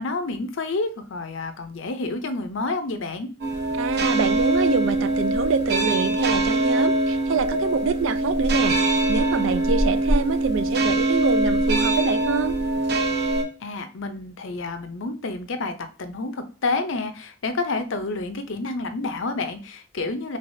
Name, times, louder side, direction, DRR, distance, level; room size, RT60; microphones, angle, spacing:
voice 1, 0.0-3.3 13.6-20.4, left 3 dB, 75° left, 8 dB, 0.6 m, -29 dB
sound 1, 3.4-13.4, right 2 dB, 55° right, 0.8 m, -22 dB
voice 2, 3.7-12.5, right 6 dB, 80° right, 12 dB, 0.4 m, -26 dB
3.8 x 3.3 x 2.6 m, 0.36 s
head